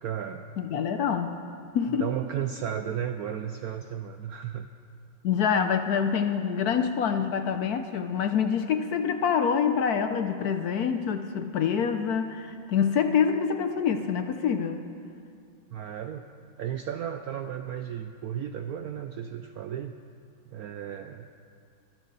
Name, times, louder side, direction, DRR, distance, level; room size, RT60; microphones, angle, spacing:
voice 1, 0.0-0.5 1.9-4.7 15.7-16.3 16.6-20.0 20.4-21.3, right 9 dB, 75° right, 8 dB, 0.8 m, -34 dB
voice 2, 0.6-1.3 1.7-2.1 5.2-14.8, left 7 dB, 65° left, 8 dB, 1.0 m, -26 dB
24.0 x 12.0 x 4.0 m, 2.5 s
omnidirectional pair, 2.1 m